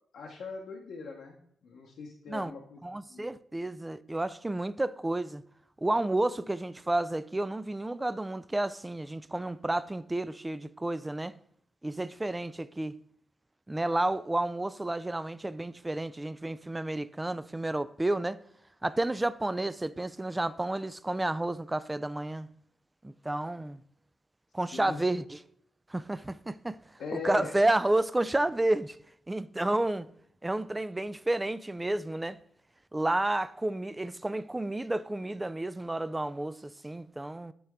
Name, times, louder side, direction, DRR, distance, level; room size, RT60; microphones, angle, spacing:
voice 1, 0.1-1.4 1.6-2.8 3.1-3.3 24.7-25.0 27.0-27.5, left 5 dB, 80° left, 0.9 m, -40 dB
voice 2, 2.8-5.4 5.8-11.3 11.8-12.9 13.7-18.4 18.8-22.5 23.0-23.8 24.5-25.4 25.9-26.8 27.1-29.0 29.3-30.1 30.4-32.4 32.9-37.5, right 2 dB, 20° right, 0.4 m, -31 dB
9.3 x 3.4 x 3.6 m
cardioid pair, 60°, 0 cm